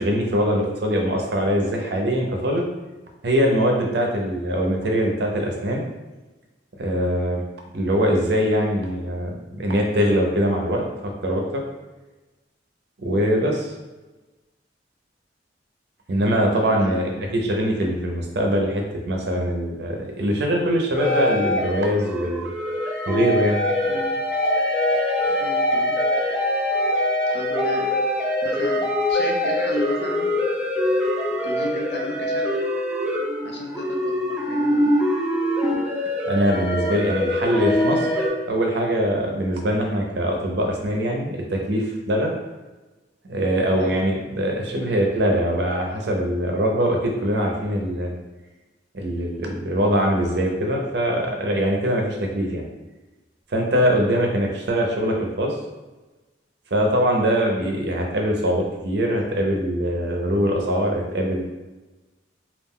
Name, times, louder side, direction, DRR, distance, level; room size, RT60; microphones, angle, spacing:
voice 1, 0.0-2.7 3.2-5.8 6.8-7.4 7.7-11.6 13.0-13.7 16.1-22.5 23.1-23.6 36.3-38.1 38.5-42.3 43.2-48.1 48.9-52.6 53.5-55.6 56.7-61.4, equal, 60° right, 1 dB, 0.5 m, -22 dB
voice 2, 16.2-17.3 23.9-24.1 25.4-26.0 27.3-27.9 28.4-30.3 31.4-32.5 33.4-34.9 43.8-43.9, left 1 dB, 60° left, 0 dB, 0.5 m, -34 dB
sound 1, 21.0-38.3, left 1 dB, 5° right, 0.4 m, -23 dB
2.3 x 2.2 x 3.5 m, 1.1 s
head